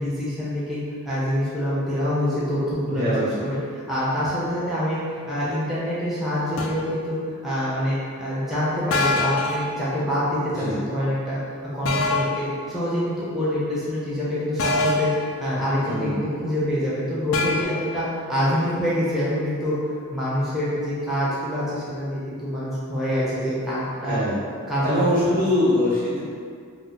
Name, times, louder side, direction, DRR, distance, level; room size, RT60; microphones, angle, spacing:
voice 1, 0.0-3.1 3.4-3.6 3.9-5.0 5.3-7.2 7.4-11.4 11.7-15.1 15.4-19.7 20.1-24.2 24.7-25.4, equal, ahead, -10 dB, 0.6 m, -26 dB
voice 2, 2.8-3.3 10.5-10.8 15.8-16.2 24.0-24.4 24.8-26.2, left 1 dB, 45° right, -10 dB, 1.0 m, -23 dB
sound 1, 6.6-6.8 8.9-9.7 11.8-12.4 14.6-15.2 17.3-17.6, left 3 dB, 70° left, 0.3 m, -23 dB
2.7 x 2.1 x 3.8 m, 2.2 s
head